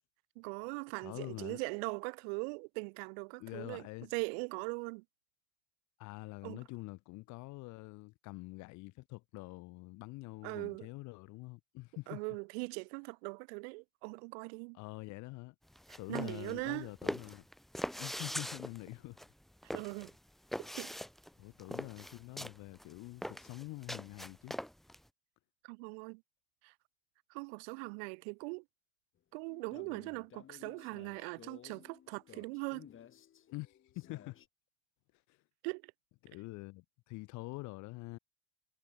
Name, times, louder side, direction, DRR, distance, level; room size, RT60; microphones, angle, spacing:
voice 1, 0.4-5.0 6.4-6.6 10.4-10.9 12.1-14.8 15.9-16.9 19.7-20.1 20.6-20.9 25.6-26.2 26.6-26.7 27.3-28.6 29.3-32.9 35.6-35.9, right 34 dB, 60° right, 5.6 m, -41 dB
voice 2, 1.0-1.6 3.4-4.1 6.0-12.2 14.7-15.5 16.0-17.4 18.0-19.2 21.4-24.6 33.5-34.4 35.3-35.4 36.2-38.2, left 22 dB, 50° left, 6.9 m, -46 dB
sound 1, 15.7-25.0, equal, ahead, 0.5 m, -42 dB
sound 2, 29.5-34.5, left 10 dB, 35° left, 4.7 m, -57 dB
figure-of-eight pair, 75°, 36 cm